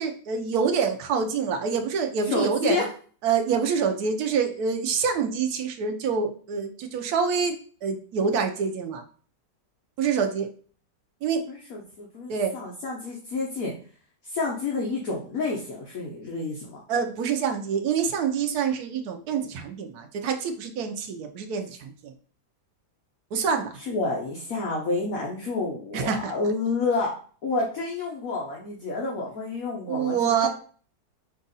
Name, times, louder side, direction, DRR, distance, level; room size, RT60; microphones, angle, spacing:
voice 1, 0.0-2.8 3.2-7.6 7.8-9.0 10.0-10.5 11.2-11.4 12.3-12.5 16.9-22.1 23.3-23.8 25.9-26.3 29.9-30.5, right 6 dB, 70° right, 4 dB, 1.2 m, -26 dB
voice 2, 2.2-2.9 11.5-13.7 14.2-16.8 23.8-27.1 27.4-30.5, left 3 dB, 60° left, -2 dB, 1.2 m, -29 dB
5.5 x 2.5 x 3.9 m, 0.43 s
omnidirectional pair, 1.8 m